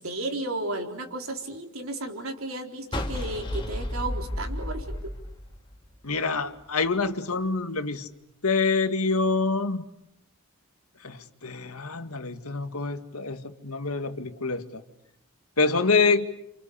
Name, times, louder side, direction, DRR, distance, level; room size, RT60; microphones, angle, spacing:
voice 1, 0.0-5.1, right 2 dB, 70° right, 4 dB, 4.1 m, -34 dB
sound 1, 2.9-6.2, left 1 dB, 20° left, 2.7 m, -32 dB
voice 2, 6.0-8.1 8.4-9.8 11.0-14.8 15.6-16.3, left 4 dB, 90° left, 9 dB, 2.0 m, -26 dB
30.0 x 28.0 x 7.2 m, 0.79 s
head